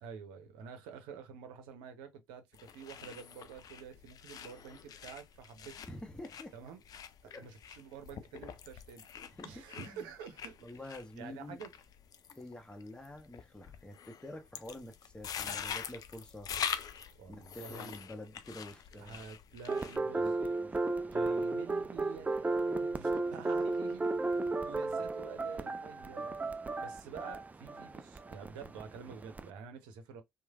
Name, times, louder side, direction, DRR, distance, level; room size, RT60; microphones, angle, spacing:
voice 1, 0.0-5.8 6.5-6.8 7.2-9.1 9.4-10.7 11.2-11.7 17.0-18.0 18.9-20.6 20.9-24.2 24.6-26.3 26.8-30.2, right 6 dB, 70° right, 0.7 m, -48 dB
sound 1, 2.5-20.0, left 8 dB, 50° left, 0.4 m, -44 dB
voice 2, 5.9-6.5 7.3-7.5 9.3-10.1 10.6-11.6 12.3-16.5 17.3-19.2 20.1-20.8 22.6-23.6 24.5-24.6, left 1 dB, 10° left, 0.9 m, -48 dB
sound 2, 19.7-29.5, right 3 dB, 20° right, 0.4 m, -34 dB
3.1 x 2.1 x 2.3 m
hypercardioid pair, 50°, 8 cm